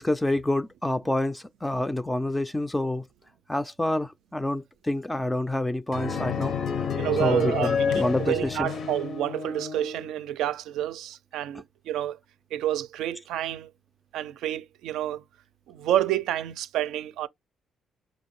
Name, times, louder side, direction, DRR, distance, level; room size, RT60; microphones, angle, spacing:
voice 1, 0.0-3.0 3.5-6.5 7.2-8.7, left 1 dB, 10° left, 0.3 m, -27 dB
sound 1, 5.9-10.1, left 6 dB, 65° left, 0.8 m, -29 dB
voice 2, 7.0-12.2 12.5-13.7 14.1-15.2 15.7-17.3, right 12 dB, 90° right, 0.4 m, -29 dB
5.1 x 2.6 x 3.1 m
cardioid pair, 90°, 0 cm